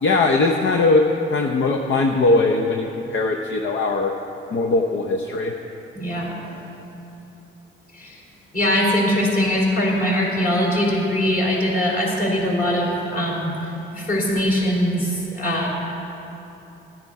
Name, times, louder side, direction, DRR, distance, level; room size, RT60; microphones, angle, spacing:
voice 1, 0.0-1.0 1.3-4.1 4.5-5.5, left 3 dB, 65° left, 2 dB, 0.8 m, -20 dB
voice 2, 5.9-6.3 7.9-8.2 8.5-15.7, equal, 40° left, -3 dB, 3.3 m, -22 dB
14.0 x 9.7 x 4.8 m, 3.0 s
cardioid pair, 95°, 21 cm